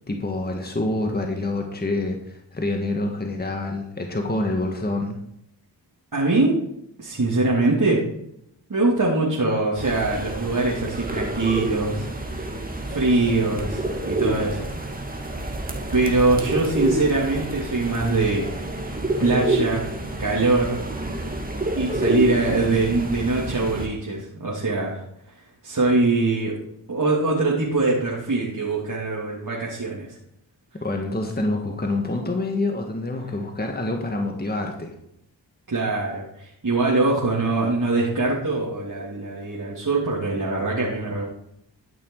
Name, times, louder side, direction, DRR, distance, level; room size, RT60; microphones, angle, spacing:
voice 1, 0.1-5.2 30.7-34.9, left 2 dB, 20° left, 2 dB, 1.9 m, -27 dB
voice 2, 6.1-6.6 7.0-8.0 8.7-12.5 12.9-14.7 15.1-15.2 15.9-18.4 18.7-18.9 19.2-19.9 20.2-20.8 21.7-25.0 25.3-26.6 26.9-30.1 35.7-41.3, right 3 dB, 45° right, -5 dB, 3.1 m, -23 dB
sound 1, 9.7-23.9, right 2 dB, 20° right, 2.2 m, -28 dB
13.0 x 6.2 x 4.8 m, 0.75 s
cardioid pair, 45°, 44 cm